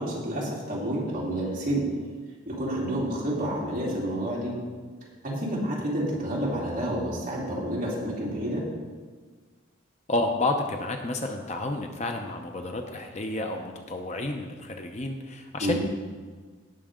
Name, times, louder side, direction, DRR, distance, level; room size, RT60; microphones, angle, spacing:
voice 1, 0.0-1.9 2.5-4.6 5.2-8.6 15.6-15.8, right 1 dB, 40° right, -6 dB, 3.1 m, -29 dB
voice 2, 10.1-15.8, left 2 dB, 35° left, 3 dB, 0.7 m, -30 dB
17.5 x 6.4 x 3.8 m, 1.5 s
head